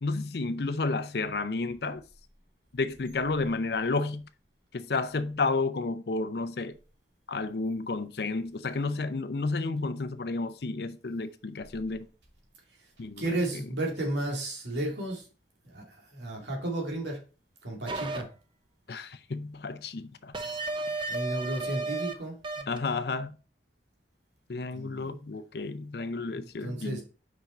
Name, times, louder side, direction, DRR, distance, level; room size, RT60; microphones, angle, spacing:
voice 1, 0.0-2.0 2.7-4.3 4.7-6.8 7.3-12.1 13.0-13.6 18.9-20.3 21.0-21.1 22.7-23.4 24.5-27.0, left 3 dB, 60° left, 0.6 m, -31 dB
voice 2, 13.2-15.3 15.6-17.2 17.6-18.3 21.1-22.7 24.5-25.2 26.2-27.0, right 1 dB, 75° right, 2.3 m, -33 dB
sound 1, 17.9-18.2 20.3-22.1 22.4-22.8, right 3 dB, 25° right, 0.6 m, -33 dB
5.8 x 5.2 x 4.2 m
head